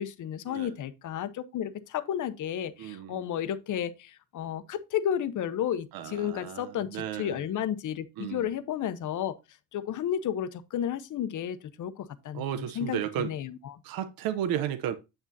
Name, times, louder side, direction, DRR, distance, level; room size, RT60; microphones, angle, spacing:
voice 1, 0.0-9.3 9.7-13.8, left 9 dB, 60° left, 0.9 m, -32 dB
voice 2, 2.8-3.3 5.9-7.5 8.2-8.5 12.3-13.4 13.8-14.9, right 10 dB, 80° right, 0.8 m, -34 dB
8.9 x 6.1 x 2.7 m
cardioid pair, 90°, 35 cm